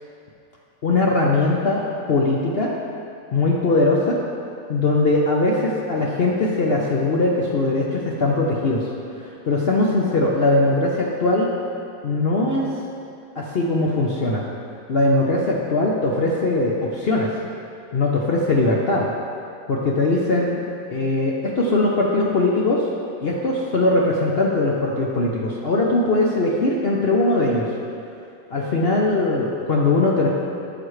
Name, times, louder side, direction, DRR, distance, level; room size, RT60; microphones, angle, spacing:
voice 1, 0.8-2.7 3.3-4.2 4.7-8.9 9.1-11.5 12.0-12.7 13.4-14.4 14.9-17.3 17.9-19.1 19.7-20.6 20.9-22.9 23.2-27.7 28.5-30.3, left 2 dB, 75° left, -3 dB, 0.5 m, -20 dB
12.5 x 7.0 x 3.2 m, 2.5 s
omnidirectional pair, 2.1 m